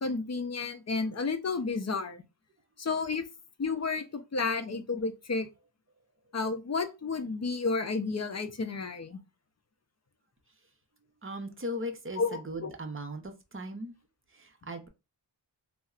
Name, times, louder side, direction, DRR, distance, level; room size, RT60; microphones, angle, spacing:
voice 1, 0.0-2.2 2.8-3.2 3.6-5.5 6.3-9.2 12.2-12.7, left 4 dB, 35° left, 0.5 m, -31 dB
voice 2, 11.2-13.9 14.3-14.9, equal, 30° right, 0.7 m, -38 dB
4.1 x 2.0 x 2.4 m
wide cardioid pair, 55°, 46 cm